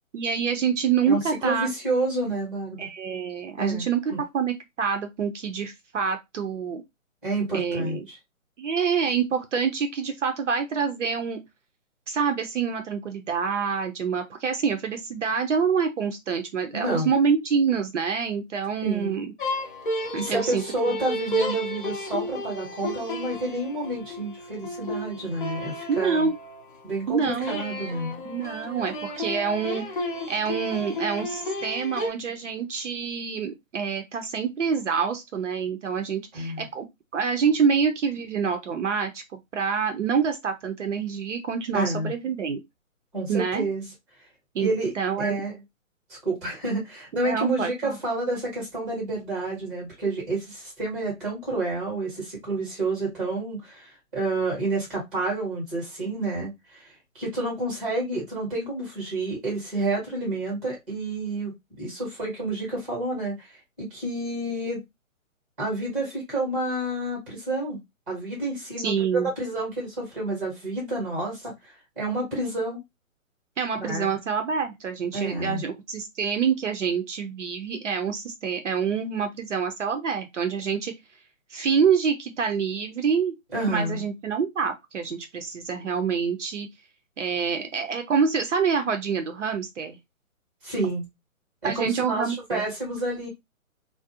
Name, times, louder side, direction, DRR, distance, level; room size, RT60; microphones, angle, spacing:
voice 1, 0.1-1.7 2.8-6.8 7.5-8.0 8.6-11.4 12.1-19.3 20.1-20.6 25.9-26.3 27.1-27.7 28.2-36.9 37.1-39.2 39.5-42.6 43.3-43.7 44.5-44.7 44.9-45.4 47.2-48.0 68.8-69.3 73.6-80.9 81.5-83.3 83.7-86.7 87.2-90.0 91.6-92.6, right 6 dB, 60° right, 0.6 m, -26 dB
voice 2, 1.1-2.8 3.6-4.2 7.2-8.1 16.7-17.1 18.8-19.3 20.1-26.3 26.8-28.2 36.3-36.7 41.7-42.1 43.1-43.8 44.6-44.9 45.2-45.6 46.2-56.9 57.1-61.5 61.8-63.5 63.8-64.8 65.6-67.8 68.1-72.8 73.8-74.1 75.1-75.6 83.5-84.0 90.6-91.1 91.6-93.3, right 2 dB, 10° right, 0.8 m, -29 dB
sound 1, 19.4-26.8 27.4-32.1, left 1 dB, 40° left, 0.5 m, -32 dB
2.4 x 2.0 x 2.6 m
hypercardioid pair, 160°, 41 cm